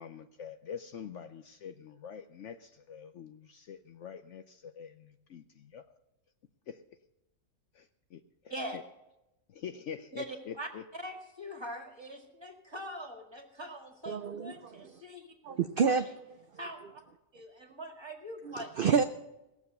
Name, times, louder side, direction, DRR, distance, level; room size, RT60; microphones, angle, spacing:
voice 1, 0.0-5.9 6.7-6.8 7.7-8.8 9.5-10.8, left 8 dB, 65° left, 9 dB, 0.8 m, -45 dB
voice 2, 10.1-15.3 15.8-16.0 16.6-16.8 17.3-19.0, equal, 15° right, 4 dB, 1.8 m, -43 dB
voice 3, 14.1-14.9 15.4-16.4 18.4-19.0, right 6 dB, 65° right, 9 dB, 0.5 m, -29 dB
17.5 x 7.2 x 6.7 m, 0.94 s
omnidirectional pair, 1.6 m